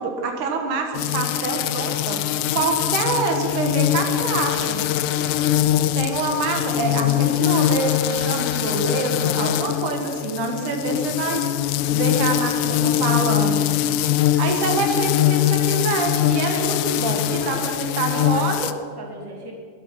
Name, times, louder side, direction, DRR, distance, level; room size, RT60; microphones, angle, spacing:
voice 1, 0.0-2.2 2.5-4.8 5.9-11.4 11.9-13.6 14.4-18.7, right 4 dB, 80° right, 3 dB, 3.0 m, -26 dB
sound 1, 0.9-18.7, left 12 dB, 80° left, 2.0 m, -22 dB
voice 2, 5.1-5.5 10.2-10.8 11.9-13.1 16.5-16.8 17.4-19.5, right 1 dB, 10° right, -1 dB, 2.0 m, -38 dB
20.0 x 8.8 x 5.8 m, 2.1 s
omnidirectional pair, 3.5 m